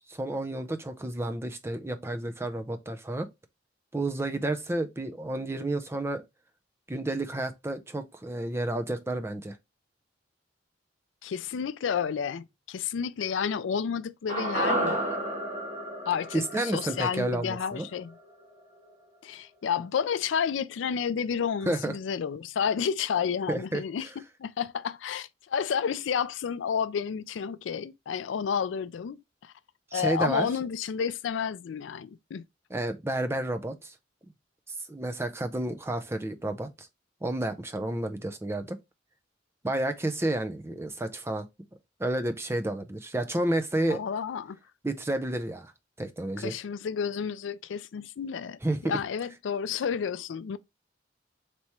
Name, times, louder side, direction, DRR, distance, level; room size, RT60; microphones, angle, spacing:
voice 1, 0.1-3.3 3.9-6.2 6.9-9.6 16.3-17.9 21.7-21.9 23.5-23.8 29.9-30.5 32.7-33.9 34.9-36.9 37.2-38.8 39.6-41.5 42.0-44.0 44.8-45.7 46.0-46.5 48.6-49.0, right 1 dB, 15° right, 0.5 m, -30 dB
voice 2, 11.2-15.0 16.1-18.2 19.2-29.5 29.9-32.4 43.8-44.6 46.4-50.6, left 7 dB, 85° left, 0.4 m, -31 dB
sound 1, 14.3-18.6 18.9-19.0, right 1 dB, 40° right, 1.4 m, -32 dB
3.4 x 3.0 x 4.2 m
head